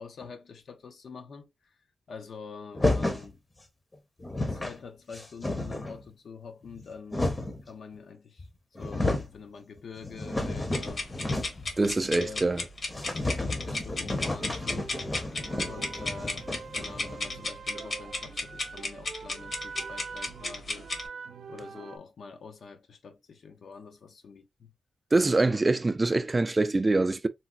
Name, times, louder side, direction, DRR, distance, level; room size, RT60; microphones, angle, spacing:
voice 1, 0.0-1.5 2.1-3.4 4.5-8.5 8.8-11.1 11.3-12.5 13.2-14.9 15.7-16.5 16.7-20.9 21.5-24.7 25.2-25.6, left 5 dB, 70° left, 0.6 m, -45 dB
sound 1, 2.7-3.3 3.9-4.0 4.2-4.8 5.1-6.0 6.7-7.6 8.4-8.5 8.7-9.4 9.8-11.7 12.0-12.1 12.4-12.5 12.9-17.4, left 2 dB, 20° left, 0.7 m, -31 dB
sound 2, 10.7-21.1, left 2 dB, 50° left, 1.0 m, -35 dB
voice 2, 11.8-12.6 15.6-15.7 25.1-27.3, right 2 dB, 25° right, 0.3 m, -24 dB
sound 3, 14.4-22.0, right 5 dB, 80° right, 0.5 m, -44 dB
3.9 x 2.0 x 2.4 m
cardioid pair, 90°, 0 cm